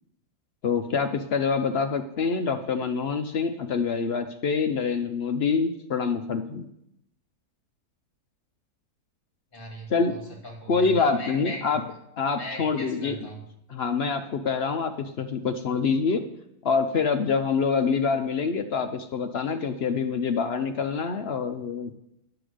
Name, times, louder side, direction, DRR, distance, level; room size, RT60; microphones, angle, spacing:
voice 1, 0.6-6.7 9.9-10.1 10.7-11.8 12.2-13.1 13.7-16.2 16.6-21.9, left 5 dB, 60° left, 7 dB, 0.6 m, -26 dB
voice 2, 9.5-11.8 12.4-13.5, equal, 35° left, -1 dB, 2.6 m, -39 dB
9.7 x 6.9 x 5.0 m, 0.79 s
omnidirectional pair, 1.7 m